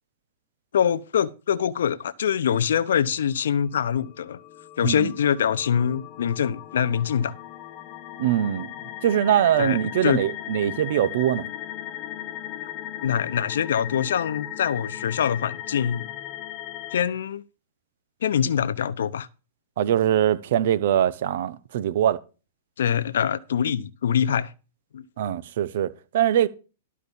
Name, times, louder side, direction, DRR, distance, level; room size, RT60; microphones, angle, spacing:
voice 1, 0.7-4.4 4.8-7.3 9.6-10.2 13.0-16.1 16.9-17.4 18.2-19.3 22.8-24.5 24.9-25.0, left 8 dB, 80° left, 0.9 m, -24 dB
sound 1, 3.9-17.0, left 13 dB, 40° left, 1.0 m, -37 dB
voice 2, 8.2-8.7 9.0-11.5 19.8-22.2 25.2-26.5, right 10 dB, 65° right, 1.0 m, -22 dB
12.5 x 4.8 x 7.1 m
hypercardioid pair, 130°, 0 cm